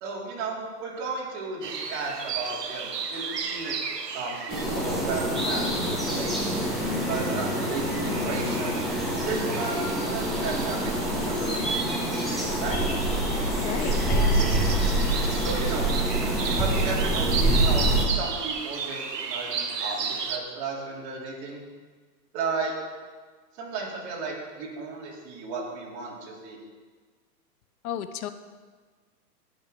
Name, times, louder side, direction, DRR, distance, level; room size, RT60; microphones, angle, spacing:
voice 1, 0.0-3.7 4.1-6.7 7.0-8.8 9.2-12.1 12.6-12.8 15.4-15.9 16.5-21.6 22.3-22.7 23.6-26.6, right 4 dB, 40° right, -2 dB, 3.0 m, -34 dB
sound 1, 1.6-20.4, right 6 dB, 85° right, 1.3 m, -35 dB
sound 2, 4.5-18.1, right 1 dB, ahead, 2.1 m, -26 dB
voice 2, 13.6-14.7 27.8-28.3, left 10 dB, 65° left, 11 dB, 0.8 m, -34 dB
18.0 x 6.2 x 3.7 m, 1.5 s
hypercardioid pair, 130°, 48 cm